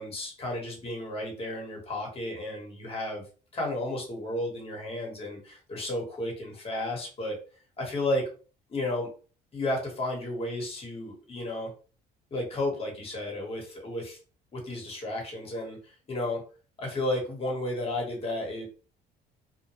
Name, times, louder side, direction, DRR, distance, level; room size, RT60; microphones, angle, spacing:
voice 1, 0.0-3.2 3.5-7.3 7.8-8.3 8.7-9.1 9.5-11.7 12.3-14.2 14.5-16.4 16.8-18.6, left 1 dB, 35° left, 0 dB, 1.2 m, -33 dB
2.2 x 2.2 x 2.9 m, 0.37 s
cardioid pair, 110°, 17 cm